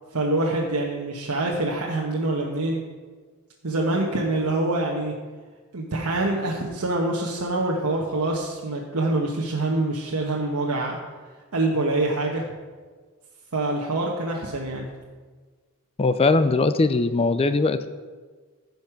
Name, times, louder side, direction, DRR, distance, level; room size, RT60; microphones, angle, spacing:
voice 1, 0.1-2.8 3.6-5.1 5.7-11.0 11.5-12.4 13.5-14.9, right 2 dB, 75° right, -2 dB, 1.2 m, -25 dB
voice 2, 16.0-17.9, left 3 dB, 25° left, 11 dB, 0.4 m, -20 dB
15.0 x 5.3 x 6.0 m, 1.5 s
head